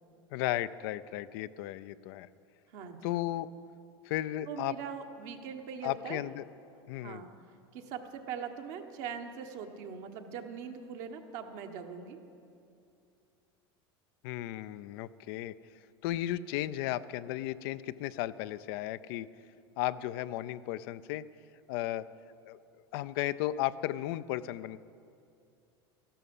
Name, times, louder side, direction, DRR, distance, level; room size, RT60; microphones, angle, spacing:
voice 1, 0.3-2.3 3.0-3.5 4.0-4.7 5.8-6.4 6.9-7.2 14.2-15.6 16.0-19.3 19.8-21.2 21.7-22.1 22.5-22.6 22.9-24.8, left 14 dB, 65° left, 15 dB, 0.4 m, -34 dB
voice 2, 2.7-3.1 4.5-6.2 7.0-7.3 7.7-12.2, right 7 dB, 65° right, 5 dB, 1.3 m, -41 dB
13.0 x 12.5 x 5.5 m, 2.5 s
hypercardioid pair, 90°, 13 cm